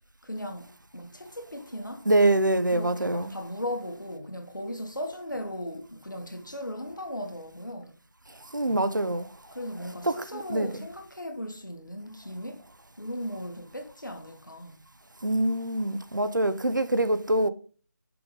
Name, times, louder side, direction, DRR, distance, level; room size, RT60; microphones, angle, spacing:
voice 1, 0.2-2.1 2.7-7.9 9.5-12.6 13.0-14.8, left 1 dB, 85° left, 1.6 m, -37 dB
voice 2, 2.1-3.3 8.5-9.3 10.0-10.8 15.2-17.5, right 1 dB, 85° right, 0.7 m, -25 dB
5.9 x 5.0 x 3.9 m
figure-of-eight pair, 160°, 10 cm